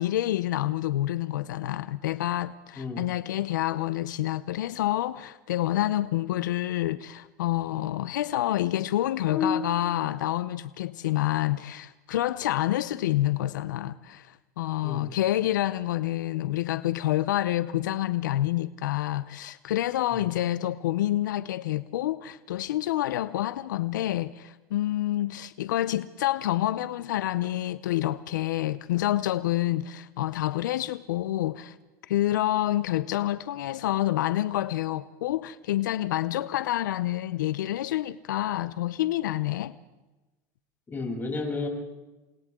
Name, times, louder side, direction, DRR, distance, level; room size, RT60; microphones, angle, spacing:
voice 1, 0.0-31.8 32.1-39.8, left 14 dB, 90° left, 0.7 m, -28 dB
voice 2, 2.7-3.1 9.3-9.7 14.8-15.1 20.1-20.3 40.9-41.7, left 4 dB, 20° left, 7.7 m, -31 dB
28.5 x 26.5 x 3.8 m
supercardioid pair, 115°, 10 cm